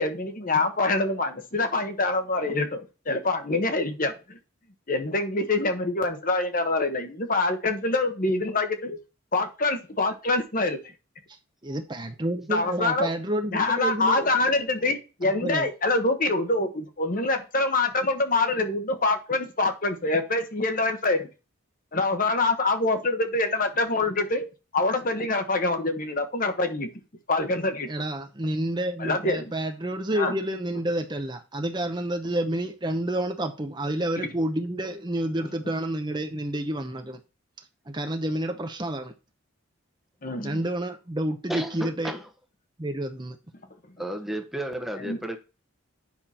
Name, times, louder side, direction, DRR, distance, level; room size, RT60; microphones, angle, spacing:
voice 1, 0.0-4.4 4.9-9.0 9.3-10.8 12.5-13.1 13.5-21.3 21.9-24.5 24.7-26.9 27.3-27.9 29.0-29.5 30.1-30.3 34.2-34.3 40.2-40.6 45.0-45.2, left 2 dB, 40° left, 6 dB, 1.2 m, -25 dB
voice 2, 11.6-14.2 15.2-15.7 27.9-37.2 37.9-39.1 40.4-42.1 42.8-43.4, right 1 dB, 20° right, 6 dB, 0.8 m, -29 dB
voice 3, 41.5-42.3 44.0-45.4, right 1 dB, ahead, 5 dB, 1.0 m, -32 dB
8.9 x 5.8 x 4.3 m, 0.31 s
head